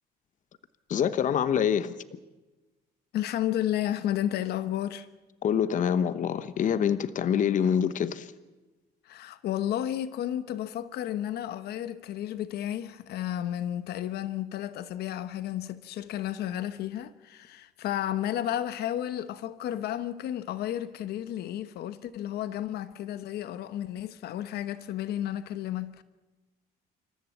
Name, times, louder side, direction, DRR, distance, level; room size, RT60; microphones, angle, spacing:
voice 1, 0.9-2.0 5.4-8.3, left 8 dB, 50° left, 1.0 m, -26 dB
voice 2, 3.1-5.1 9.0-26.0, left 12 dB, 70° left, 1.0 m, -32 dB
27.0 x 14.0 x 8.5 m
cardioid pair, 110°, 17 cm